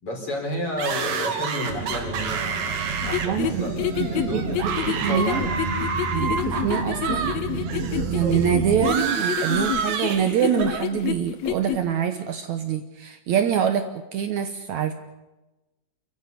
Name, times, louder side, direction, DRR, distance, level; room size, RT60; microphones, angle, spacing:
voice 1, 0.0-5.4, left 1 dB, 40° left, 2 dB, 5.5 m, -31 dB
sound 1, 0.8-7.4 7.6-10.8, right 6 dB, 85° right, 3.9 m, -29 dB
sound 2, 1.7-8.9, right 4 dB, 50° right, 3.3 m, -31 dB
sound 3, 3.0-11.8, left 10 dB, 65° left, 1.8 m, -28 dB
voice 2, 3.2-3.7 4.0-5.5 6.1-7.3 7.6-7.7 8.1-13.9 14.1-14.9, right 9 dB, 65° right, 8 dB, 2.1 m, -25 dB
29.0 x 14.5 x 8.2 m, 1.1 s
omnidirectional pair, 4.0 m